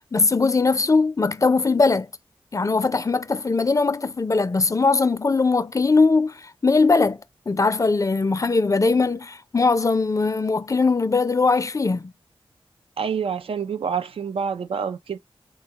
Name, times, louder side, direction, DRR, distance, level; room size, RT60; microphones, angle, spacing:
voice 1, 0.1-2.1 2.5-7.2 7.5-12.1, left 4 dB, 35° left, 0.4 m, -20 dB
voice 2, 13.0-15.2, right 6 dB, 75° right, 0.4 m, -27 dB
3.6 x 2.2 x 2.9 m
cardioid pair, 50°, 10 cm